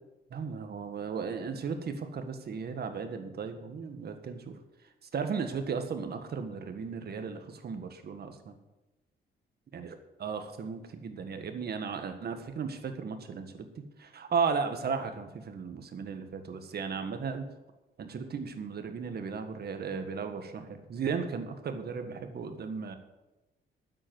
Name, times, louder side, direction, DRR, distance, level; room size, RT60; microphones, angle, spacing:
voice 1, 0.3-4.6 5.1-8.6 9.7-9.9 10.2-17.4 18.0-23.0, right 5 dB, 55° right, 7 dB, 1.7 m, -35 dB
9.6 x 8.1 x 8.0 m, 1.0 s
cardioid pair, 90°, 20 cm